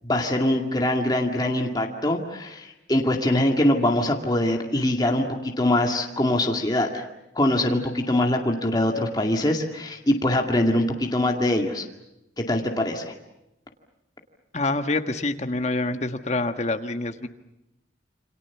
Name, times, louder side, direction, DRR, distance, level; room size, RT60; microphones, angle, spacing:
voice 1, 0.0-7.0 7.4-11.9 12.4-13.1, left 1 dB, 20° left, 1 dB, 2.2 m, -23 dB
voice 2, 14.5-17.3, left 2 dB, 35° left, 7 dB, 1.5 m, -26 dB
28.5 x 25.5 x 7.2 m, 0.86 s
head